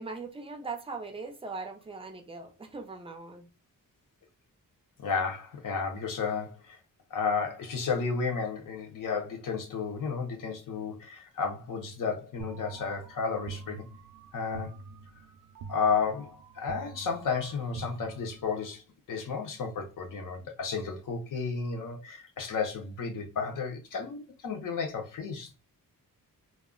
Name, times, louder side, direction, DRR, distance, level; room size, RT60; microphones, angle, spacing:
voice 1, 0.0-3.5, right 4 dB, 15° right, 0.4 m, -40 dB
voice 2, 5.0-6.8 7.1-13.9 14.3-14.7 15.7-18.8 19.1-25.5, left 5 dB, 65° left, 0.7 m, -32 dB
sound 1, 12.4-18.8, right 4 dB, 75° right, 0.5 m, -46 dB
2.3 x 2.0 x 3.7 m
wide cardioid pair, 175°, 34 cm